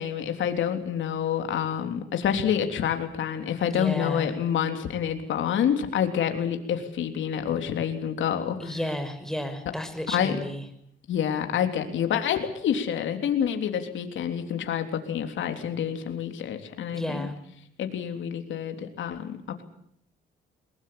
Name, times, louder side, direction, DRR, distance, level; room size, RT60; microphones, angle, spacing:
voice 1, 0.0-8.7 10.1-10.4 11.1-17.3 17.8-19.4, left 8 dB, 70° left, 6 dB, 3.5 m, -27 dB
voice 2, 3.7-4.3 8.6-10.6 16.9-17.3, left 1 dB, ahead, 8 dB, 5.5 m, -32 dB
22.0 x 21.0 x 8.7 m, 0.69 s
cardioid pair, 90°, 20 cm